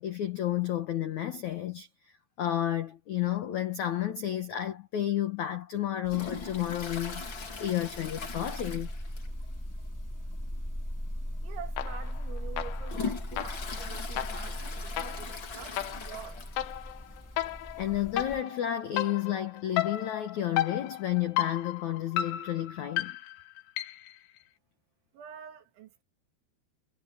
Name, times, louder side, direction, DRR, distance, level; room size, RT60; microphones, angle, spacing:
voice 1, 0.0-8.9 17.8-23.2, left 12 dB, 90° left, 1.6 m, -31 dB
sound 1, 6.0-18.4, equal, 5° left, 4.9 m, -39 dB
Toilet flush, 6.1-9.5 9.8-9.9 10.3-10.4 11.3-11.4 11.9-16.8 17.2-17.3 17.4-17.5 18.6-18.7, left 5 dB, 35° left, 2.3 m, -41 dB
voice 2, 11.4-16.4 25.1-26.0, right 9 dB, 75° right, 4.5 m, -46 dB
sound 2, 11.8-12.2 12.6-24.2, left 13 dB, 70° left, 3.1 m, -35 dB
omnidirectional pair, 5.4 m